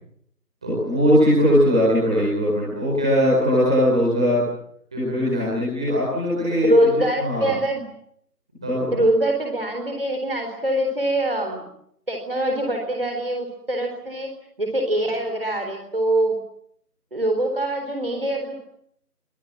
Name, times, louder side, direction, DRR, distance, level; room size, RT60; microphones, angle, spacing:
voice 1, 0.6-4.4 4.9-6.8 7.2-7.5 8.5-8.9, equal, 5° right, -7 dB, 4.5 m, -20 dB
voice 2, 6.6-7.8 8.9-11.6 12.1-16.4 17.1-18.6, right 1 dB, 35° right, 3 dB, 4.1 m, -23 dB
29.0 x 24.5 x 7.5 m, 0.69 s
figure-of-eight pair, 175°, 48 cm